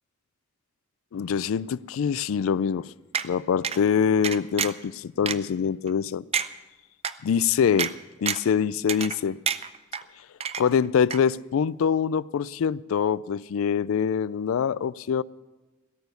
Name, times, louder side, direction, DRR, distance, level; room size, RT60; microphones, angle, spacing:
voice 1, 1.1-2.9 3.2-6.5 7.2-7.9 8.2-9.4 10.6-15.2, left 7 dB, 75° left, 0.3 m, -24 dB
sound 1, 3.1-3.3 3.6-3.8 4.2-4.8 5.3-5.4 5.9-6.0 6.3-6.5 7.0-7.1 7.8-7.9 8.3-8.5 8.9-9.2 9.5-10.0 10.4-10.9 11.1-11.2, right 7 dB, 30° right, 0.5 m, -28 dB
17.0 x 7.0 x 8.1 m
head